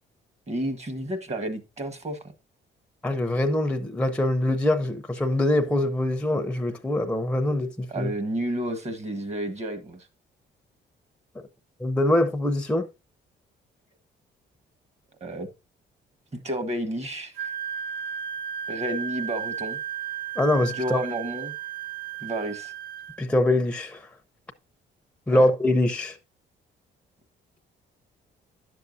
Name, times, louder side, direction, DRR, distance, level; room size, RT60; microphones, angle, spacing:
voice 1, 0.5-2.2 7.9-10.0 15.2-15.5 16.3-17.5 18.7-19.8 20.7-21.5 22.2-22.7 25.3-25.5, right 1 dB, 35° right, 1.4 m, -31 dB
voice 2, 3.0-8.1 11.8-12.9 20.4-21.0 23.2-24.0 25.3-26.2, left 1 dB, 5° left, 0.7 m, -23 dB
Wind instrument woodwind instrument, 17.4-23.2, right 9 dB, 90° right, 0.9 m, -34 dB
10.5 x 6.8 x 2.6 m
cardioid pair, 90°, 20 cm